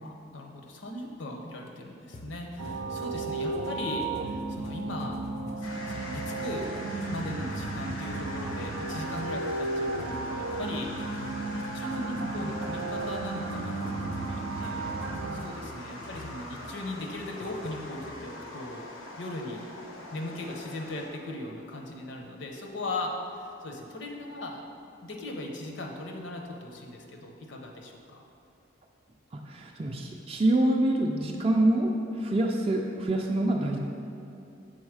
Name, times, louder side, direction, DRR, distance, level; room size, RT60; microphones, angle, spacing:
voice 1, 0.0-5.2 5.6-6.7 7.0-15.0 15.3-18.9 19.2-19.6 20.1-24.6 25.0-28.2, left 2 dB, 65° left, 1 dB, 0.7 m, -38 dB
sound 1, 2.1-18.3, equal, 35° left, 0.4 m, -48 dB
sound 2, 2.6-15.4, right 3 dB, 90° right, 0.5 m, -34 dB
sound 3, 5.6-21.1, left 1 dB, 90° left, 0.9 m, -43 dB
voice 2, 29.3-33.8, right 1 dB, 30° right, 1 dB, 0.3 m, -26 dB
6.2 x 3.9 x 4.8 m, 2.7 s
head